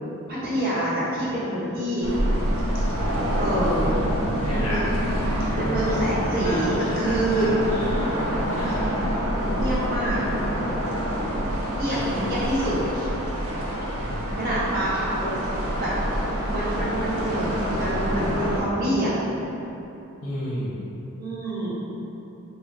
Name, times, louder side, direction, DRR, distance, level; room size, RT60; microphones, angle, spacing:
voice 1, 0.3-2.1 3.4-3.9 4.5-4.8 5.6-7.7 8.6-8.8 9.5-10.2 11.7-13.1 14.4-15.3 15.8-15.9 16.5-19.2 21.2-21.7, right 1 dB, 40° right, -9 dB, 0.7 m, -26 dB
sound 1, 2.0-18.6, equal, 85° right, 0.5 m, -26 dB
voice 2, 4.4-4.8 5.9-6.0 6.4-8.1 8.5-8.9 11.9-12.4 13.9-14.5 20.2-20.8, equal, 85° left, -6 dB, 0.6 m, -33 dB
3.5 x 2.1 x 2.6 m, 2.9 s
head